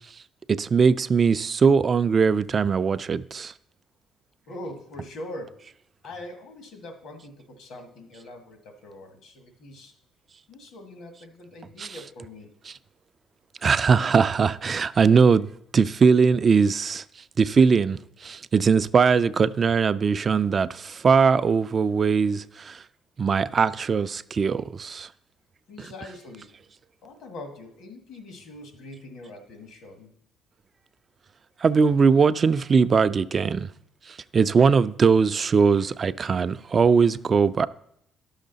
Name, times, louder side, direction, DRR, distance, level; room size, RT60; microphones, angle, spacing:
voice 1, 0.5-3.5 11.8-12.0 13.6-17.0 17.4-22.8 23.2-25.1 31.6-33.7 34.1-37.7, right 5 dB, 40° right, 0.3 m, -20 dB
voice 2, 4.5-5.5 6.0-9.9 10.5-12.5 25.7-26.5 27.0-30.1, left 1 dB, 75° left, 1.6 m, -42 dB
11.0 x 6.4 x 4.0 m
cardioid pair, 95°, 0 cm